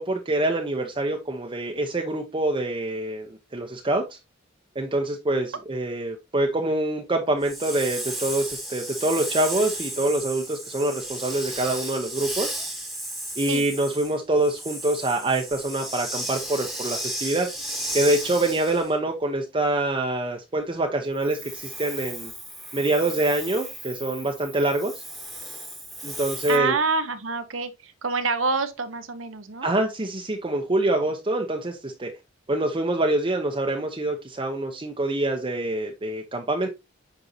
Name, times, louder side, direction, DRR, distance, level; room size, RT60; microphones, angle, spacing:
voice 1, 0.0-4.2 4.7-12.6 13.4-17.5 17.9-22.3 22.7-24.9 26.0-26.7 29.6-32.1 32.5-36.7, right 2 dB, 25° right, 0.8 m, -25 dB
Hiss, 7.4-18.9 21.2-26.6, right 1 dB, ahead, 1.4 m, -34 dB
voice 2, 26.5-29.7, right 4 dB, 85° right, 1.1 m, -27 dB
8.0 x 5.4 x 2.8 m
head